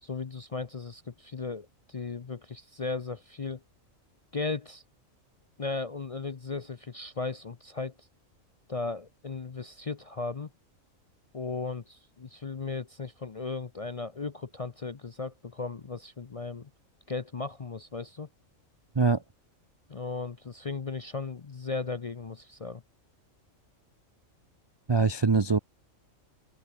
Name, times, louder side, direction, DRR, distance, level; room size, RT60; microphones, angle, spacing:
voice 1, 0.0-3.6 4.3-4.8 5.6-8.1 8.7-10.5 11.3-16.7 17.1-18.3 19.9-22.8, left 4 dB, 40° left, 0.5 m, -36 dB
voice 2, 24.9-25.6, right 4 dB, 35° right, 0.4 m, -23 dB
omnidirectional pair, 1.4 m